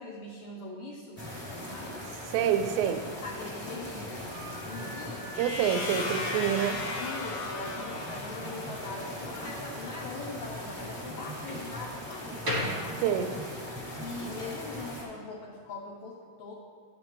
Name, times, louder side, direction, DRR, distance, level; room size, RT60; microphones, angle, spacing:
voice 1, 0.0-1.9 3.2-5.4 7.0-13.1 14.0-16.5, left 3 dB, 85° left, -2 dB, 1.6 m, -41 dB
sound 1, 1.2-15.0, left 1 dB, 5° left, 1.2 m, -40 dB
voice 2, 2.3-3.0 5.4-6.8 13.0-13.3, right 9 dB, 85° right, 8 dB, 2.2 m, -27 dB
Slam, 4.3-13.6, equal, 40° right, 1.0 m, -41 dB
sound 2, 5.3-9.2, left 2 dB, 55° left, 2.1 m, -36 dB
11.0 x 7.5 x 3.1 m, 2.2 s
omnidirectional pair, 4.1 m